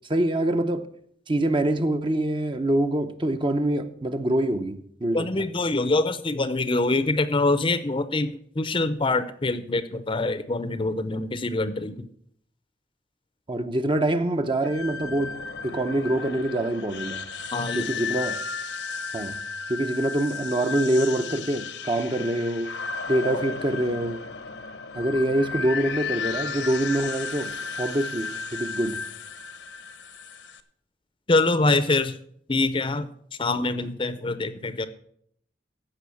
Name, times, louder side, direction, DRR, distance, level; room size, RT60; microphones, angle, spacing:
voice 1, 0.1-0.9 1.3-5.4 13.5-15.3 15.6-17.2 17.7-18.4 19.1-19.4 19.7-22.7 23.1-24.2 25.0-27.5 27.8-29.0, right 1 dB, 25° right, 0.7 m, -25 dB
voice 2, 5.1-12.1 17.5-17.9 23.3-23.4 31.3-32.2 32.5-33.1 33.4-34.9, left 2 dB, 30° left, 0.6 m, -25 dB
sound 1, 14.6-30.6, left 5 dB, 70° left, 0.9 m, -34 dB
15.0 x 5.5 x 7.0 m
head